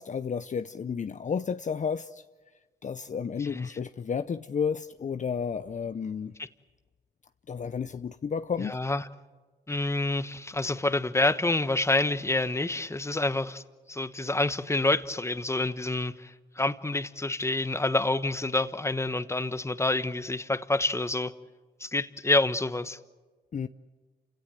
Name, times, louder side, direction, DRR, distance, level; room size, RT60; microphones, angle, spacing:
voice 1, 0.0-2.2 2.8-6.3 7.5-8.8 23.5-23.7, left 6 dB, 45° left, 0.7 m, -32 dB
voice 2, 8.6-9.0 9.7-13.6 13.9-21.3 21.8-23.0, left 2 dB, 15° left, 1.2 m, -28 dB
28.0 x 17.0 x 9.1 m
supercardioid pair, 55°, 18 cm